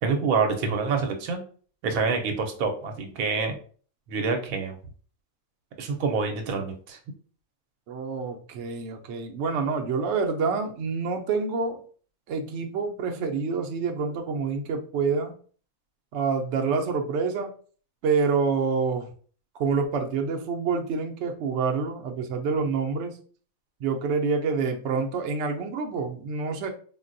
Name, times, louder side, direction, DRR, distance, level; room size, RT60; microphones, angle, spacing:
voice 1, 0.0-1.4 1.8-3.6 4.1-4.8 5.8-7.0, right 4 dB, 85° right, 4 dB, 1.0 m, -26 dB
voice 2, 7.9-11.8 12.3-15.3 16.1-17.5 18.0-19.1 19.6-23.2 23.8-26.7, right 5 dB, 65° right, 3 dB, 0.7 m, -27 dB
3.8 x 2.1 x 2.5 m, 0.43 s
omnidirectional pair, 1.4 m